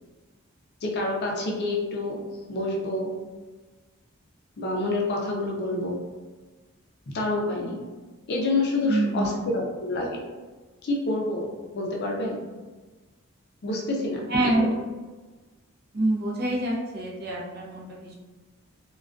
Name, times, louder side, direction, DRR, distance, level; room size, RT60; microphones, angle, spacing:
voice 1, 0.8-2.2 2.5-3.1 4.6-6.0 7.1-7.8 8.3-10.2 10.8-12.4 13.6-14.7, left 2 dB, 50° left, -1 dB, 0.4 m, -28 dB
voice 2, 8.9-9.5 14.3-14.7 15.9-18.2, right 1 dB, 45° right, -3 dB, 0.5 m, -26 dB
2.3 x 2.2 x 2.4 m, 1.3 s
head